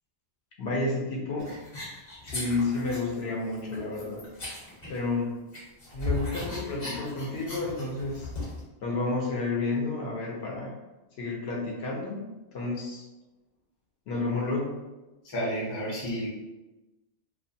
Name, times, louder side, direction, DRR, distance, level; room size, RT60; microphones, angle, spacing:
voice 1, 0.6-1.5 2.2-4.2 4.9-5.3 5.9-8.3 8.8-10.7 11.2-13.1 14.1-14.7, left 3 dB, 70° left, -2 dB, 0.8 m, -30 dB
sound 1, 1.4-3.2 3.5-5.2 5.5-8.6, left 2 dB, 45° left, 1.0 m, -37 dB
voice 2, 15.2-16.3, equal, 25° left, -6 dB, 0.5 m, -31 dB
2.3 x 2.2 x 2.6 m, 1.1 s
omnidirectional pair, 1.1 m